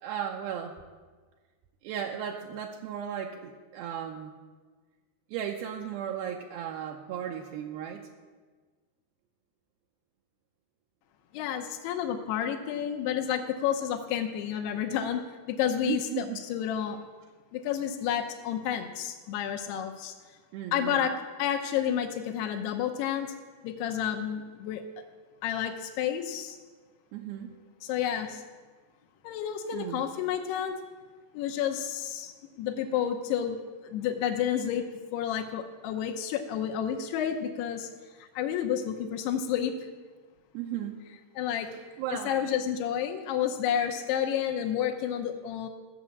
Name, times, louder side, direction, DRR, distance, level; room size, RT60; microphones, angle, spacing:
voice 1, 0.0-0.8 1.8-4.4 5.3-8.1 15.8-16.4 20.5-21.1 27.1-27.6 29.7-30.0 40.5-41.0 42.0-42.4, right 9 dB, 80° right, 1 dB, 2.4 m, -35 dB
voice 2, 11.3-17.0 17.5-20.1 20.7-21.1 21.4-23.3 23.6-24.8 25.4-26.6 27.8-28.4 29.2-30.8 31.3-33.6 33.8-34.9 35.1-37.9 38.2-39.7 41.4-41.7 42.3-45.7, left 9 dB, 85° left, 2 dB, 2.9 m, -30 dB
14.5 x 7.0 x 8.5 m, 1.4 s
omnidirectional pair, 4.7 m